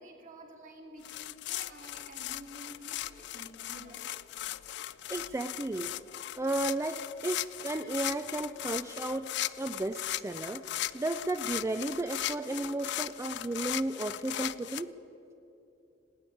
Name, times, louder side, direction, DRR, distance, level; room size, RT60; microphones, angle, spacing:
voice 1, 0.0-4.1, right 1 dB, 45° right, 1 dB, 2.2 m, -50 dB
sound 1, 1.0-14.8, left 13 dB, 70° left, 0.3 m, -38 dB
voice 2, 5.1-5.9 6.4-9.3 9.6-14.9, right 2 dB, 15° right, 8 dB, 0.4 m, -34 dB
18.5 x 8.5 x 9.1 m, 2.9 s
head